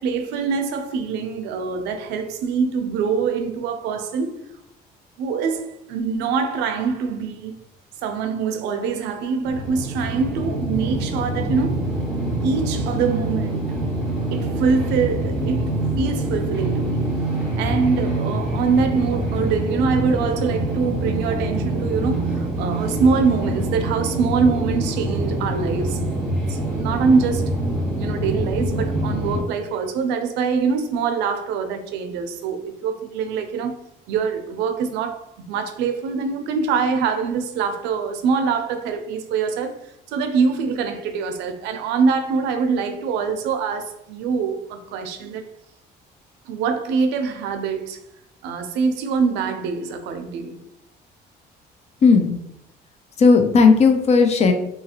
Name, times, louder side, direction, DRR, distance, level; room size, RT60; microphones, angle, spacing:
voice 1, 0.0-4.4 5.2-7.6 8.0-11.8 12.4-13.8 14.3-17.1 17.6-27.5 28.0-33.8 34.1-45.4 46.5-48.0 48.4-50.6, right 5 dB, 90° right, 0.4 m, -24 dB
sound 1, 9.4-29.4, right 1 dB, ahead, 1.2 m, -25 dB
voice 2, 52.0-52.4 53.2-54.5, left 4 dB, 40° left, 0.4 m, -14 dB
2.8 x 2.4 x 2.8 m
cardioid pair, 110°, 17 cm